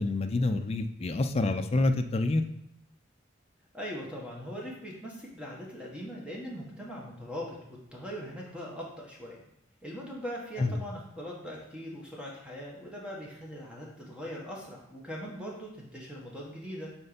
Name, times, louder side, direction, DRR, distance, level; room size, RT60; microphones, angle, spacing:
voice 1, 0.0-2.4 10.6-10.7, left 2 dB, 30° left, 7 dB, 0.4 m, -27 dB
voice 2, 3.7-9.4 9.8-16.9, equal, 5° right, -3 dB, 1.3 m, -41 dB
4.4 x 4.3 x 5.1 m, 0.80 s
head